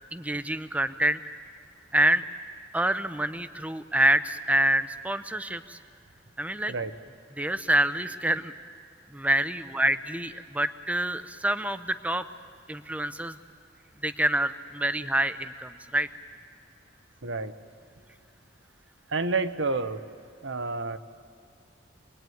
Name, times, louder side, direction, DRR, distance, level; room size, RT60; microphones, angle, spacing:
voice 1, 0.1-1.3 1.9-2.3 2.7-5.8 6.4-6.7 7.4-8.5 9.1-12.3 12.7-13.4 14.0-16.1, right 1 dB, 10° right, 12 dB, 0.7 m, -26 dB
voice 2, 17.2-17.5 19.1-20.0 20.4-21.0, right 3 dB, 85° right, 10 dB, 1.1 m, -29 dB
26.5 x 20.5 x 9.4 m, 2.3 s
head